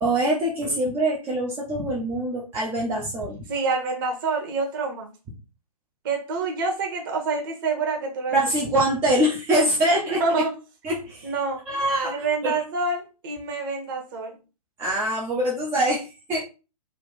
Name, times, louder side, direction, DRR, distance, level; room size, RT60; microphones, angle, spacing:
voice 1, 0.0-3.5 8.3-10.4 10.8-11.3 11.7-12.1 12.4-12.5 14.8-16.4, right 1 dB, 10° right, -3 dB, 0.4 m, -24 dB
voice 2, 3.5-5.1 6.0-8.4 10.1-10.5 11.2-11.6 12.0-14.4, right 4 dB, 35° right, 3 dB, 1.0 m, -27 dB
3.4 x 2.3 x 3.8 m, 0.31 s
figure-of-eight pair, 125°, 20 cm